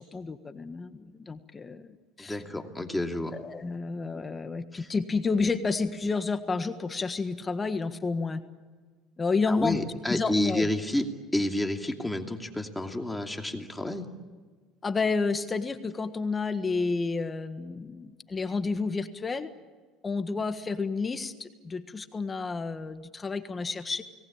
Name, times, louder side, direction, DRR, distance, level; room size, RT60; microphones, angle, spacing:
voice 1, 0.0-1.9 2.2-2.4 3.3-8.4 9.2-9.8 10.1-10.7 14.8-19.5 20.0-24.0, left 4 dB, 25° left, 9 dB, 1.5 m, -30 dB
voice 2, 2.2-3.4 4.7-4.9 9.5-14.1, left 1 dB, 10° left, 3 dB, 2.7 m, -30 dB
30.0 x 19.0 x 8.8 m, 1.4 s
supercardioid pair, 100°, 0 cm